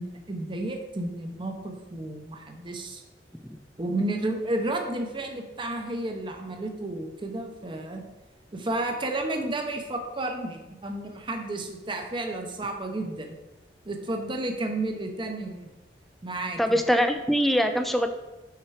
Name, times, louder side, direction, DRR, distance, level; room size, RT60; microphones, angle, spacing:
voice 1, 0.0-3.0 3.8-8.0 8.5-13.4 13.8-15.7 16.2-16.8, right 2 dB, 30° right, 4 dB, 0.8 m, -32 dB
voice 2, 16.6-18.1, equal, ahead, 6 dB, 0.4 m, -23 dB
5.8 x 4.4 x 4.9 m, 1.1 s
head